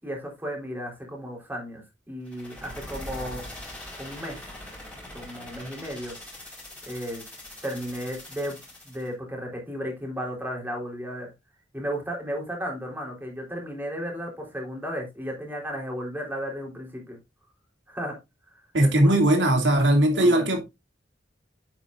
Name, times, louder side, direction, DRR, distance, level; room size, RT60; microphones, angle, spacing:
voice 1, 0.0-3.4 4.0-4.5 5.1-6.2 6.8-7.2 7.6-8.6 8.8-11.3 11.7-17.2 17.9-18.1 18.8-19.1 20.1-20.5, equal, 10° right, 4.0 m, -34 dB
sound 1, 2.3-9.1, left 1 dB, 10° left, 4.8 m, -42 dB
voice 2, 18.7-20.6, right 1 dB, 90° right, 2.8 m, -19 dB
9.0 x 8.9 x 2.5 m
head